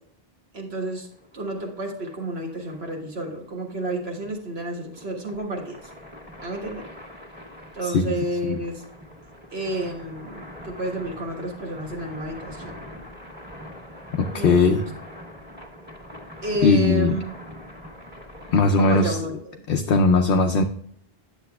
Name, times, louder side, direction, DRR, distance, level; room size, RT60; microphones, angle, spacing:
voice 1, 0.5-1.1 1.3-5.8 6.4-6.8 7.7-8.8 9.5-12.7 14.3-14.8 16.4-17.2 18.8-19.6, right 1 dB, 80° right, 1.8 m, -30 dB
sound 1, 0.8-19.1, left 1 dB, 10° right, 1.5 m, -43 dB
voice 2, 7.8-8.1 8.4-8.6 14.1-14.8 16.6-17.2 18.5-19.2 19.7-20.6, left 4 dB, 65° left, 0.7 m, -19 dB
9.6 x 7.3 x 2.3 m
omnidirectional pair, 1.0 m